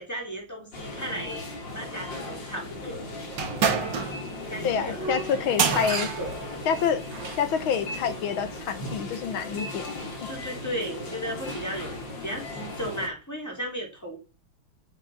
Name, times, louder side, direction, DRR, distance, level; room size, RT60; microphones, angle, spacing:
voice 1, 0.0-1.5 1.7-3.1 4.5-5.3 5.7-6.4 7.2-7.3 10.3-12.0 12.2-14.2, equal, 10° left, 0 dB, 3.7 m, -35 dB
sound 1, 0.7-13.1, left 2 dB, 60° left, 3.5 m, -37 dB
sound 2, 3.3-7.5, right 6 dB, 60° right, 2.1 m, -29 dB
voice 2, 4.6-6.1 6.7-7.1 7.4-10.0, left 7 dB, 75° left, 11 dB, 2.0 m, -27 dB
9.3 x 7.5 x 5.9 m, 0.32 s
omnidirectional pair, 2.3 m